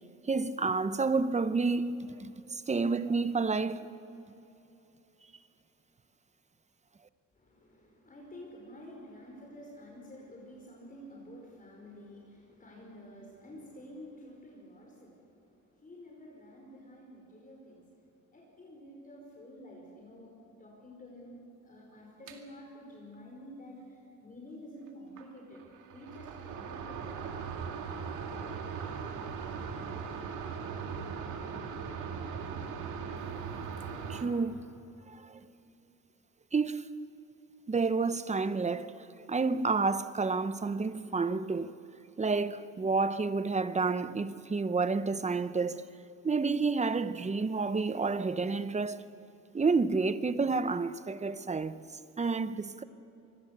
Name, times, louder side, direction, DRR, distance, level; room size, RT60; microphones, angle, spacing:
voice 1, 0.3-3.9 34.1-34.6 35.1-35.4 36.5-36.8 37.7-41.7 42.2-45.9 46.2-49.0 49.5-51.8 52.2-52.8, right 4 dB, 25° right, 0.9 m, -30 dB
voice 2, 7.3-25.6 25.9-27.1, equal, 30° left, 5.3 m, -50 dB
sound 1, 22.3-22.4 25.2-25.3 25.5-34.2, right 6 dB, 85° right, 2.3 m, -39 dB
26.5 x 21.5 x 6.8 m
cardioid pair, 90°, 30 cm